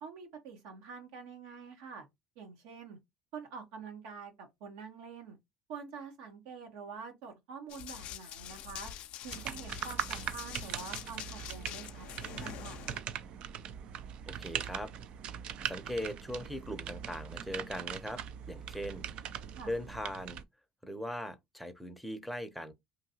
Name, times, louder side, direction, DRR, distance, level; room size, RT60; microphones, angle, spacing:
voice 1, 0.0-2.0 2.4-3.0 3.3-5.4 5.7-8.9 9.2-12.8 19.5-19.7, right 5 dB, 80° right, 0.9 m, -46 dB
Run, 7.7-13.0, left 11 dB, 65° left, 0.4 m, -45 dB
sound 1, 9.3-20.4, right 9 dB, 55° right, 0.3 m, -41 dB
voice 2, 14.3-14.9 15.7-18.2 18.5-19.1 19.7-20.4 20.8-22.7, equal, ahead, 0.6 m, -39 dB
2.7 x 2.6 x 2.7 m
supercardioid pair, 95°, 2 cm